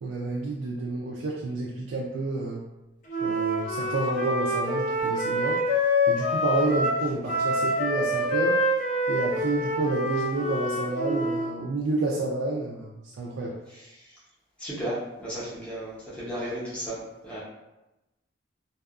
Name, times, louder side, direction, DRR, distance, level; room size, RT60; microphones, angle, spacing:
voice 1, 0.0-2.6 3.2-5.6 6.1-8.6 9.1-13.6, right 2 dB, 80° right, -4 dB, 0.3 m, -29 dB
Wind instrument woodwind instrument, 3.1-11.5, equal, 40° left, 0.5 m, -26 dB
voice 2, 14.6-17.0 17.2-17.4, right 1 dB, 5° left, -9 dB, 0.7 m, -34 dB
2.7 x 2.3 x 2.3 m, 0.99 s
head